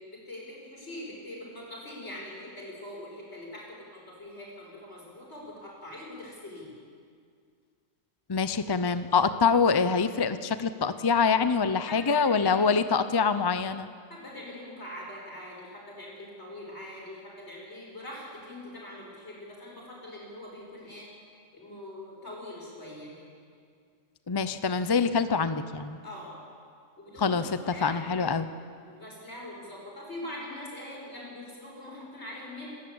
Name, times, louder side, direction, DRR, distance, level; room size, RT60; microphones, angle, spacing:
voice 1, 0.0-6.7 11.9-12.8 14.1-21.1 21.5-23.3 26.0-26.4 27.0-28.3 28.8-32.7, left 1 dB, 50° left, -3 dB, 6.9 m, -43 dB
voice 2, 8.3-13.9 24.3-26.0 27.2-28.5, left 5 dB, 35° left, 12 dB, 0.4 m, -25 dB
29.0 x 13.0 x 8.7 m, 2.2 s
omnidirectional pair, 1.5 m